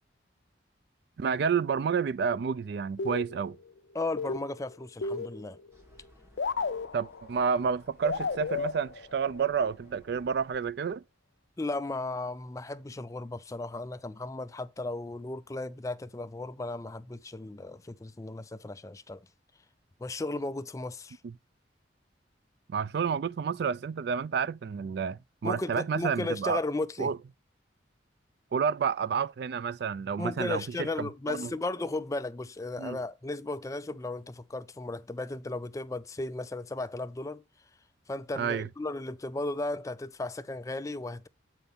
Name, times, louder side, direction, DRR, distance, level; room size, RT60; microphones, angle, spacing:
voice 1, 1.2-3.6 6.9-11.0 21.2-21.3 22.7-26.6 27.0-27.2 28.5-31.5 32.8-33.0 38.4-38.7, right 6 dB, 60° right, 0.3 m, -30 dB
sound 1, 3.0-3.7 4.0-5.7 6.0-6.1 6.4-7.5 8.0-9.5, left 4 dB, 70° left, 0.6 m, -34 dB
voice 2, 3.9-5.6 11.6-19.3 20.0-21.2 25.4-27.1 30.2-37.4 38.1-41.3, left 2 dB, 15° left, 0.4 m, -35 dB
sound 2, 5.7-10.7, equal, 15° right, 1.8 m, -59 dB
8.0 x 5.6 x 3.5 m
head